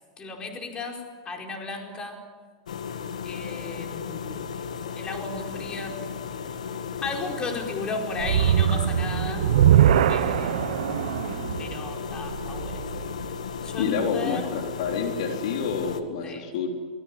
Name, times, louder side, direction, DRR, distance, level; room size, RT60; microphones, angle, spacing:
voice 1, 0.2-2.2 3.2-4.5 5.0-6.0 7.0-9.5 10.1-11.1 11.6-12.8 13.6-14.5 16.2-16.5, left 3 dB, 25° left, 2 dB, 4.7 m, -35 dB
sound 1, 2.7-16.0, left 6 dB, 90° left, 1.9 m, -35 dB
sound 2, 8.2-13.5, right 10 dB, 75° right, 0.9 m, -22 dB
voice 2, 13.8-16.7, left 6 dB, 70° left, 2 dB, 3.9 m, -28 dB
23.5 x 20.5 x 9.2 m, 1.5 s
hypercardioid pair, 125°, 4 cm